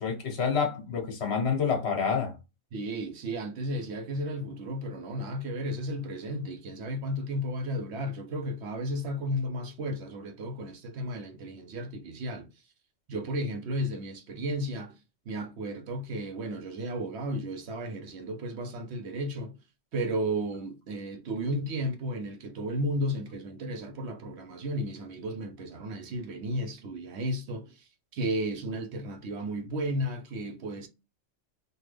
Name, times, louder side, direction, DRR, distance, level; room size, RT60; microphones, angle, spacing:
voice 1, 0.0-2.3, left 6 dB, 60° left, 1.4 m, -28 dB
voice 2, 2.7-12.5 13.1-15.0 15.3-19.6 19.9-27.8 28.1-30.9, equal, 65° right, 0.9 m, -33 dB
3.5 x 2.4 x 3.2 m
omnidirectional pair, 1.3 m